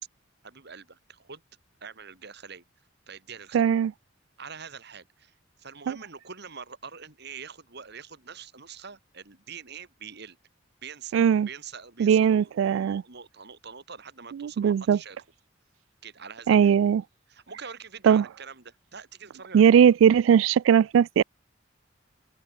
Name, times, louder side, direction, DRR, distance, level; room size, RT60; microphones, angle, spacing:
voice 1, 0.4-1.4 1.8-2.6 3.1-3.7 4.4-5.3 5.6-10.4 10.8-11.2 11.5-15.2 16.0-16.7 17.3-19.7, right 6 dB, 60° right, 2.8 m, -44 dB
voice 2, 3.5-3.9 5.9-6.0 11.1-11.5 12.0-13.0 14.4-15.0 16.5-17.0 18.0-18.2 19.5-21.2, right 8 dB, 80° right, 0.3 m, -19 dB
open air
head